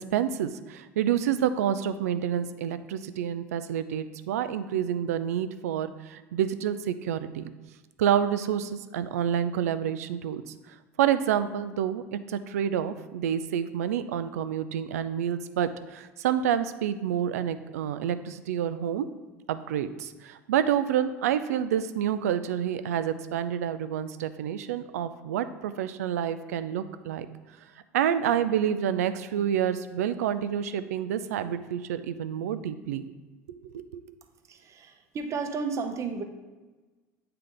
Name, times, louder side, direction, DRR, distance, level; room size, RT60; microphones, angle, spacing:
voice 1, 0.0-7.5 8.0-10.5 11.0-19.1 19.5-27.3 27.9-33.1 33.5-34.0, right 9 dB, 75° right, 12 dB, 0.4 m, -28 dB
voice 2, 34.5-36.2, right 4 dB, 40° right, 7 dB, 0.7 m, -33 dB
8.6 x 3.3 x 3.8 m, 1.2 s
hypercardioid pair, 75°, 8 cm